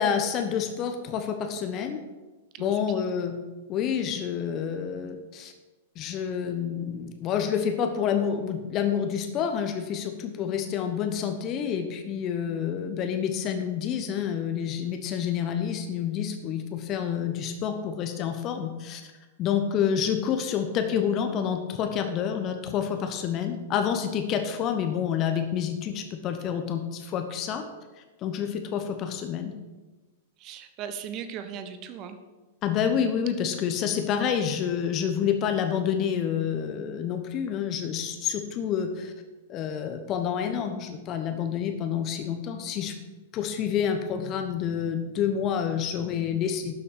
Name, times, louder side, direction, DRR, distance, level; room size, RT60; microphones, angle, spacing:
voice 1, 0.0-2.0 2.6-3.4 3.7-5.5 6.0-19.0 19.4-27.6 28.2-29.5 32.6-39.1 39.5-42.9 43.3-46.7, left 8 dB, 35° left, 6 dB, 1.0 m, -28 dB
voice 2, 30.4-32.2, right 8 dB, 35° right, 9 dB, 1.0 m, -38 dB
12.0 x 6.9 x 5.1 m, 1.2 s
figure-of-eight pair, 100°, 0 cm